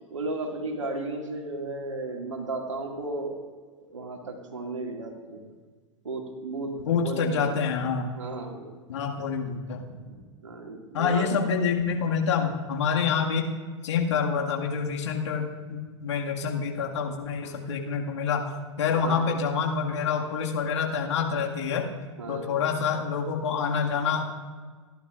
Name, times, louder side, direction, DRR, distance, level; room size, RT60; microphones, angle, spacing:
voice 1, 0.1-3.3 3.9-5.5 6.0-7.4 8.2-8.7 10.0-11.3 17.4-17.6 18.9-19.3 22.2-22.7, right 2 dB, 80° right, 2 dB, 2.2 m, -34 dB
voice 2, 6.8-8.1 8.9-10.0 10.9-13.5 13.8-18.5 18.8-21.9 22.3-24.3, left 6 dB, 70° left, 1 dB, 1.9 m, -27 dB
28.0 x 11.5 x 2.5 m, 1.5 s
figure-of-eight pair, 95°, 16 cm